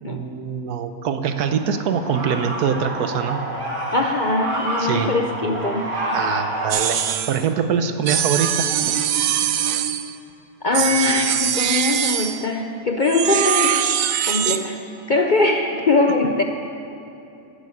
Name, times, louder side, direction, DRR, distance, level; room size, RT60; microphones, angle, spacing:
voice 1, 0.0-3.4 4.8-5.1 6.1-9.0, right 7 dB, 80° right, 9 dB, 1.3 m, -24 dB
sound 1, 1.3-6.7, right 1 dB, 50° right, 2.6 m, -28 dB
voice 2, 3.9-5.9 10.6-13.8 14.3-14.8 15.1-16.4, left 2 dB, 45° left, 3 dB, 0.6 m, -21 dB
sound 2, 6.7-7.4 8.1-10.2 10.7-12.4 13.0-14.6, right 10 dB, 65° right, 1.0 m, -22 dB
11.5 x 10.5 x 8.6 m, 2.8 s
omnidirectional pair, 1.6 m